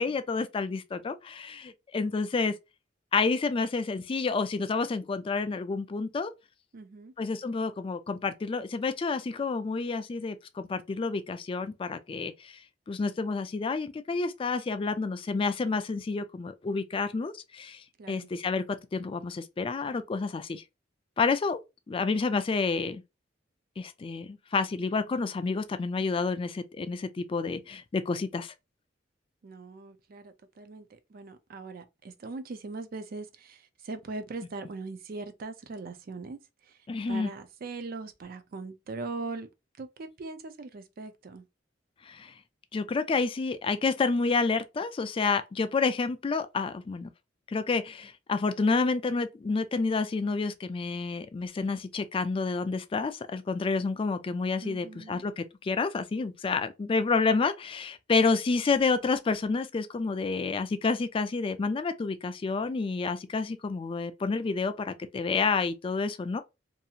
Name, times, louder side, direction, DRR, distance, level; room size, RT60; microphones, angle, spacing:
voice 1, 0.0-2.5 3.1-6.3 7.2-12.6 12.9-18.6 18.9-20.6 21.2-21.6 21.9-23.0 23.8-28.5 36.9-37.3 42.0-42.3 42.7-47.1 47.5-66.4, left 4 dB, 30° left, 0.3 m, -29 dB
voice 2, 6.7-7.1 18.0-18.3 29.4-36.8 37.1-39.5 39.8-41.4 54.6-55.2, right 3 dB, 50° right, 0.4 m, -40 dB
2.6 x 2.4 x 2.7 m
head